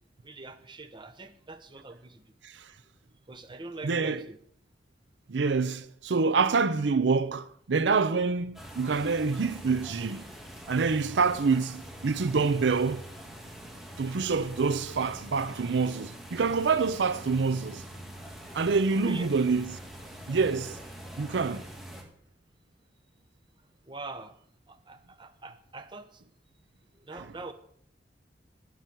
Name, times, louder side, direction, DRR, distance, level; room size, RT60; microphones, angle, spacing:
voice 1, 0.2-2.2 2.7-2.8 3.3-4.4 19.0-19.3 23.8-24.4 24.7-26.2 26.9-27.5, right 2 dB, 25° right, 1.0 m, -43 dB
voice 2, 3.8-4.3 5.3-10.3 10.7-13.0 14.0-17.8 18.5-19.8 20.3-20.8 21.2-21.7, right 4 dB, 85° right, 0.6 m, -26 dB
sound 1, 8.5-22.0, equal, ahead, 2.8 m, -44 dB
19.0 x 6.9 x 4.6 m
head